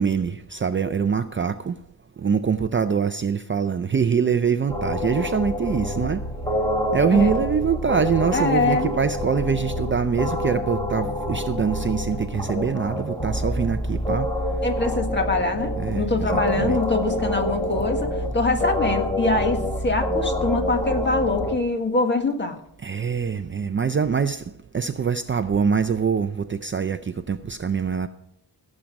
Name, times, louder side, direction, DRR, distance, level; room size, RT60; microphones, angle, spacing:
voice 1, 0.0-1.7 2.2-6.2 6.9-14.3 15.8-16.8 22.8-24.4 24.7-28.1, right 6 dB, 30° right, 0.5 m, -24 dB
sound 1, 4.7-21.6, left 1 dB, 10° left, 1.8 m, -27 dB
voice 2, 8.3-8.9 14.6-22.6, left 3 dB, 25° left, 1.7 m, -24 dB
17.0 x 7.5 x 5.2 m
wide cardioid pair, 125°, 41 cm